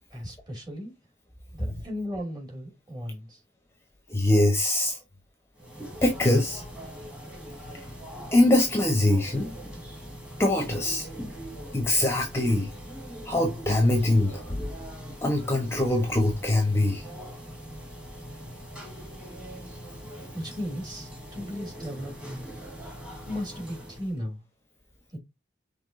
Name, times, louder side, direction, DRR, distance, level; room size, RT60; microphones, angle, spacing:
voice 1, 0.1-0.9 1.5-3.4 20.3-22.5 23.3-24.4 25.1-25.2, equal, 25° right, 2.3 m, -36 dB
voice 2, 4.1-5.0 6.0-6.6 7.7-7.8 8.3-9.5 10.4-11.1 11.7-12.7 13.2-14.6 15.2-17.0, left 1 dB, 15° left, 0.9 m, -23 dB
sound 1, 5.6-24.2, equal, 5° right, 1.6 m, -42 dB
5.9 x 3.5 x 2.5 m
head